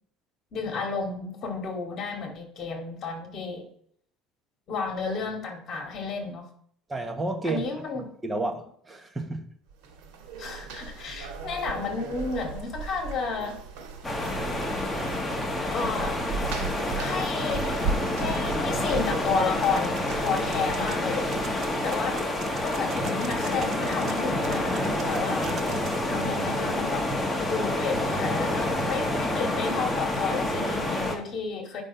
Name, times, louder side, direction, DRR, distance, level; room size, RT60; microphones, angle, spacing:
voice 1, 0.5-3.7 4.7-6.5 7.4-8.1 10.4-13.5 15.7-16.2 16.9-17.9 18.2-21.3 21.8-22.2 22.6-25.5 26.1-27.0 27.5-31.8, left 4 dB, 35° left, 3 dB, 2.3 m, -31 dB
voice 2, 6.9-7.7 8.2-9.5 25.1-25.3, right 2 dB, 10° right, 4 dB, 1.2 m, -31 dB
sound 1, 9.7-21.8, right 5 dB, 80° right, 2.1 m, -36 dB
sound 2, 14.0-31.2, left 1 dB, 10° left, 1.3 m, -28 dB
sound 3, 19.6-26.0, right 6 dB, 35° right, 0.9 m, -43 dB
9.6 x 5.3 x 5.6 m, 0.64 s
cardioid pair, 150°, 0 cm